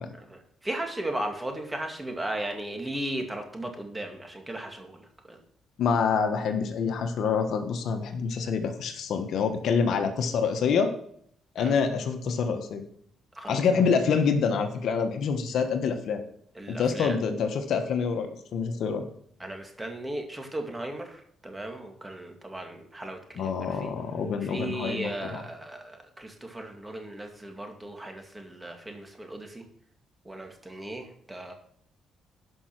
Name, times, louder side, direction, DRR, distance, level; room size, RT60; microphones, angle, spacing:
voice 1, 0.2-5.4 11.6-11.7 13.3-13.6 16.5-17.2 19.4-23.9 24.5-29.6 30.2-31.5, right 1 dB, 15° right, 3 dB, 2.2 m, -36 dB
voice 2, 5.8-10.9 11.5-12.8 13.5-16.2 16.7-19.0 23.4-25.4, left 6 dB, 70° left, 6 dB, 1.3 m, -26 dB
11.5 x 5.7 x 6.1 m, 0.65 s
cardioid pair, 90°, 0 cm